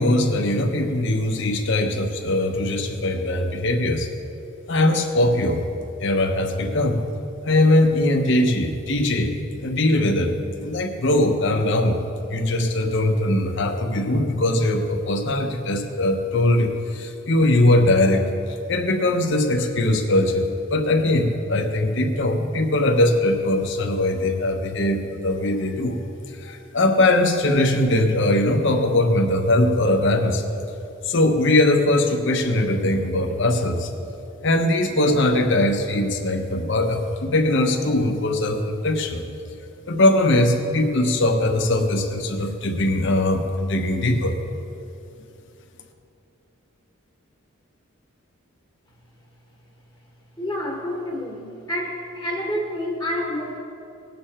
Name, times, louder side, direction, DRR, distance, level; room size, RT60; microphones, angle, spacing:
voice 1, 0.0-4.1 4.7-5.6 6.0-7.0 7.4-9.3 9.6-12.0 12.3-18.3 18.7-26.0 26.3-30.4 31.0-33.9 34.4-39.2 39.9-44.3, left 1 dB, 60° left, 2 dB, 1.0 m, -21 dB
voice 2, 50.4-53.6, left 1 dB, 15° left, -1 dB, 1.3 m, -28 dB
19.5 x 7.0 x 4.4 m, 2.8 s
head